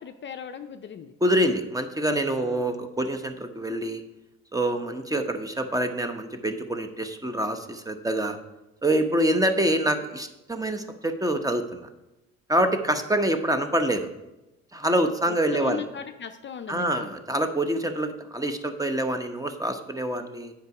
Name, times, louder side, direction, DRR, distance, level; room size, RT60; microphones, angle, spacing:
voice 1, 0.0-1.1 2.3-2.7 15.3-17.1, left 7 dB, 35° left, 7 dB, 0.5 m, -38 dB
voice 2, 1.2-4.0 4.5-8.4 8.8-11.9 12.5-14.1 14.7-15.8 16.7-20.5, right 1 dB, 10° right, 7 dB, 0.8 m, -26 dB
8.0 x 5.2 x 4.8 m, 0.99 s
supercardioid pair, 70°, 32 cm